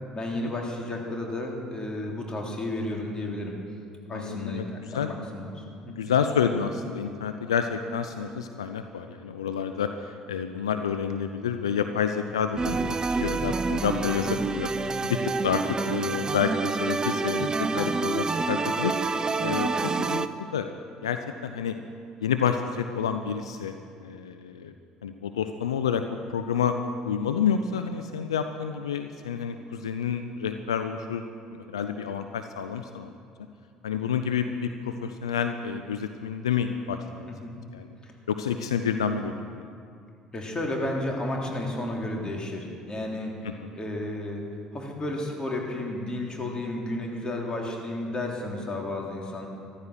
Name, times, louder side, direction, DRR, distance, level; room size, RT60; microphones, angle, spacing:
voice 1, 0.1-3.6 4.1-5.9 37.3-37.5 38.0-38.1 40.3-49.5, left 1 dB, 30° left, 0 dB, 3.4 m, -32 dB
voice 2, 4.1-4.7 4.9-5.1 5.9-20.3 20.5-20.7 21.0-21.8 22.2-23.7 24.0-24.7 25.0-26.0 26.3-26.8 27.0-31.2 31.5-33.1 33.8-37.3 37.7-37.9 38.3-39.6 43.4-43.7, left 7 dB, 85° left, 8 dB, 0.5 m, -29 dB
sound 1, 12.6-20.3, right 4 dB, 25° right, 0.7 m, -27 dB
14.0 x 13.0 x 6.3 m, 2.4 s
hypercardioid pair, 60°, 3 cm